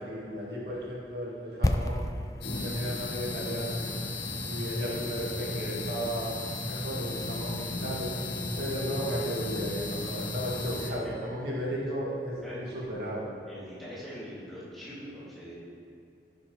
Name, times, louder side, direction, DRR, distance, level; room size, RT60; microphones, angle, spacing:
voice 1, 0.0-2.1 2.6-3.8 4.4-6.3 6.6-8.1 8.6-13.3, equal, 65° right, -6 dB, 2.1 m, -34 dB
sound 1, 1.6-5.6 5.8-5.9, left 1 dB, 20° left, 0.3 m, -33 dB
sound 2, 2.4-10.9, left 2 dB, 70° left, 1.7 m, -35 dB
voice 2, 11.0-11.3 12.4-12.8 13.5-15.5, equal, ahead, -11 dB, 2.8 m, -43 dB
15.0 x 7.3 x 3.4 m, 2.4 s
head